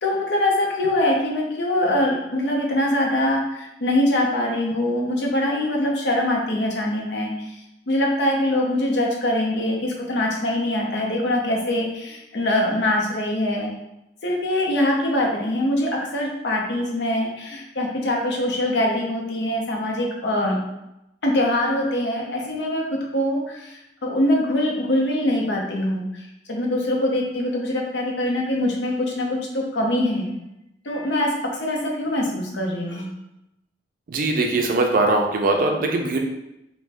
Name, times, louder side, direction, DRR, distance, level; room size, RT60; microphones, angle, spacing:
voice 1, 0.0-7.3 7.9-13.7 14.2-20.6 21.2-26.2 26.5-30.4 30.8-33.1, left 1 dB, 70° left, -1 dB, 0.6 m, -23 dB
voice 2, 34.1-36.2, right 2 dB, 50° right, 2 dB, 0.4 m, -21 dB
2.5 x 2.1 x 3.3 m, 0.88 s
head